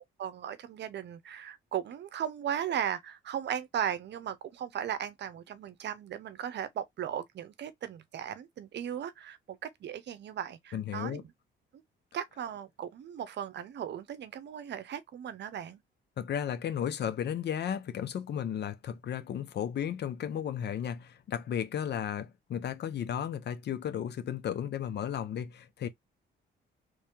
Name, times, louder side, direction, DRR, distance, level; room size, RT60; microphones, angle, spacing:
voice 1, 0.2-11.3 11.7-11.8 12.1-15.8, right 9 dB, 60° right, 0.7 m, -37 dB
voice 2, 10.7-11.2 16.2-25.9, left 9 dB, 60° left, 0.7 m, -34 dB
3.2 x 2.8 x 3.5 m
cardioid pair, 90°, 20 cm